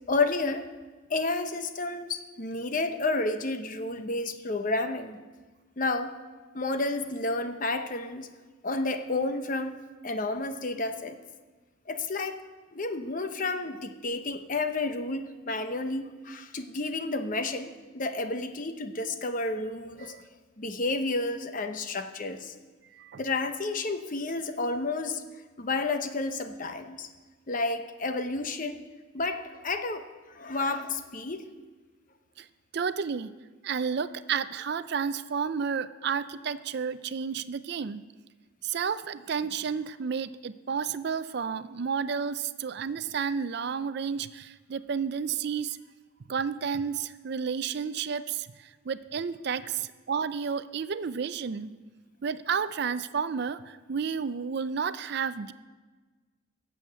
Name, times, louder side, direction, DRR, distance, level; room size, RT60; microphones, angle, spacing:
voice 1, 0.1-0.7 1.1-5.2 5.8-6.1 6.5-8.3 8.6-11.2 11.9-12.4 12.7-20.2 20.6-22.5 23.2-25.2 25.6-27.1 27.5-28.8 29.1-30.1 30.4-31.4, left 3 dB, 40° left, 8 dB, 0.9 m, -31 dB
voice 2, 32.7-33.3 33.6-38.0 38.6-45.8 46.3-51.7 52.2-55.5, right 6 dB, 55° right, 14 dB, 0.4 m, -31 dB
12.0 x 7.2 x 8.1 m, 1.3 s
head